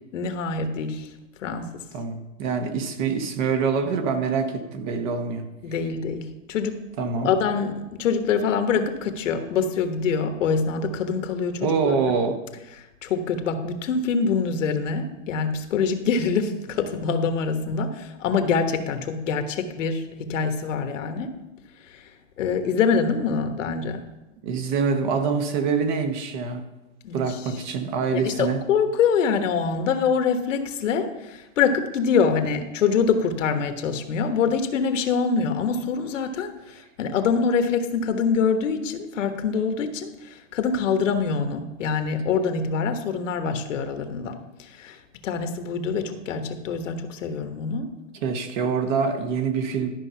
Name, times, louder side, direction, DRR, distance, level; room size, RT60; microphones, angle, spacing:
voice 1, 0.1-1.1 1.4-1.8 5.6-12.1 13.0-21.3 21.8-22.0 22.4-24.0 27.0-27.2 28.1-45.0 45.2-47.9, left 5 dB, 70° left, 7 dB, 1.4 m, -25 dB
voice 2, 1.9-5.5 7.0-7.3 11.6-12.4 24.4-26.6 27.1-28.6 48.2-49.9, right 5 dB, 40° right, 7 dB, 1.1 m, -25 dB
12.0 x 5.5 x 5.7 m, 0.99 s
hypercardioid pair, 155°, 38 cm